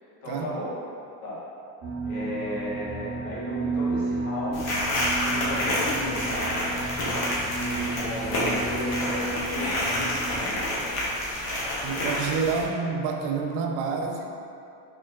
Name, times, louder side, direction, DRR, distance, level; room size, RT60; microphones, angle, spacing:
voice 1, 0.2-0.7 1.2-1.4 2.0-4.8 5.2-6.7 7.6-11.3, left 1 dB, 60° left, -8 dB, 1.3 m, -35 dB
sound 1, 1.8-10.4, right 3 dB, 40° right, 0.6 m, -33 dB
sound 2, 4.5-12.6, left 1 dB, 45° left, 0.8 m, -28 dB
voice 2, 11.8-14.3, right 5 dB, 85° right, 2 dB, 0.5 m, -28 dB
4.3 x 3.0 x 2.3 m, 2.6 s
cardioid pair, 175°, 38 cm